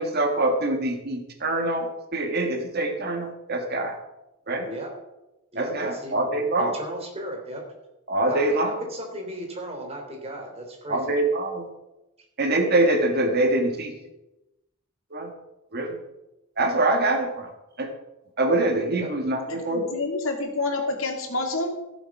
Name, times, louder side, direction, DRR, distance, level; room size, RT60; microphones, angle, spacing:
voice 1, 0.0-1.9 2.1-3.9 4.5-4.7 5.6-6.7 8.1-8.7 10.9-11.7 12.4-13.9 15.1-15.3 15.7-16.0 16.6-17.5 17.8-17.9 18.4-19.8, right 2 dB, 50° right, 4 dB, 1.9 m, -24 dB
voice 2, 5.5-7.6 8.3-11.1 18.9-19.1, equal, 30° right, 1 dB, 3.4 m, -36 dB
voice 3, 19.5-21.7, left 2 dB, 90° left, 3 dB, 2.4 m, -28 dB
15.0 x 7.2 x 6.0 m, 0.95 s
head